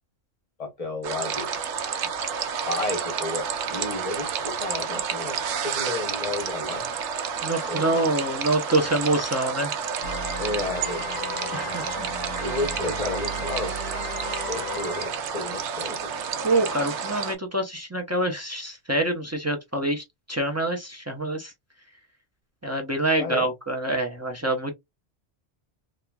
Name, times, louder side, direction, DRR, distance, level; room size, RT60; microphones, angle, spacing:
voice 1, 0.6-1.6 2.7-5.4 5.6-6.9 7.7-8.1 10.4-11.0 12.4-13.8 14.5-16.1 23.2-23.5, left 2 dB, 35° left, 0.8 m, -32 dB
sound 1, 1.0-17.3, right 6 dB, 80° right, 0.9 m, -30 dB
voice 2, 7.4-9.7 11.5-12.1 16.4-21.5 22.6-24.7, right 2 dB, 20° right, 0.4 m, -26 dB
sound 2, 10.0-15.1, left 3 dB, 85° left, 0.9 m, -36 dB
3.0 x 2.4 x 2.2 m
omnidirectional pair, 1.2 m